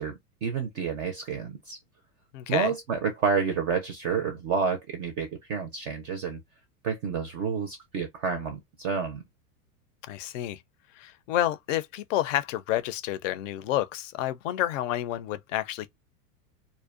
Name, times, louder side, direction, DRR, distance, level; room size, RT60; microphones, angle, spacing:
voice 1, 0.0-1.8 2.5-6.4 6.8-9.2, right 6 dB, 30° right, 0.4 m, -29 dB
voice 2, 2.3-2.7 10.1-10.6 11.0-15.9, left 13 dB, 55° left, 0.5 m, -29 dB
2.5 x 2.1 x 2.4 m
supercardioid pair, 135°, 47 cm